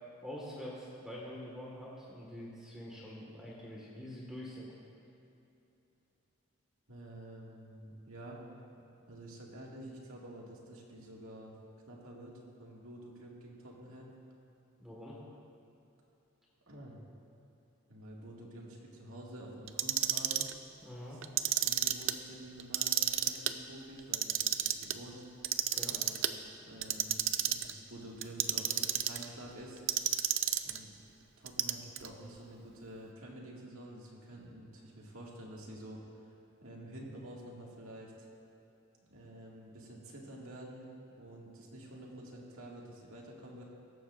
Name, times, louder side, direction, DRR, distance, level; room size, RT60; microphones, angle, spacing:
voice 1, 0.2-4.7 14.8-15.2 20.8-21.2 25.7-26.0, equal, 5° right, -6 dB, 1.6 m, -45 dB
voice 2, 6.9-8.4 8.8-11.5 11.9-14.1 16.7-17.0 17.9-20.5 21.1-21.2 21.6-25.2 25.9-26.2 26.5-29.8 30.6-30.9 31.4-36.0 36.6-38.3 39.1-40.9 41.2-43.6, right 1 dB, 80° right, -3 dB, 2.1 m, -49 dB
Clock, 19.7-20.5 21.2-22.1 22.6-23.5 24.0-24.9 25.4-26.3 26.8-27.7 28.2-29.3 29.9-30.8 31.5-32.1, right 12 dB, 60° right, 0.5 m, -31 dB
16.5 x 14.0 x 2.5 m, 2.8 s
head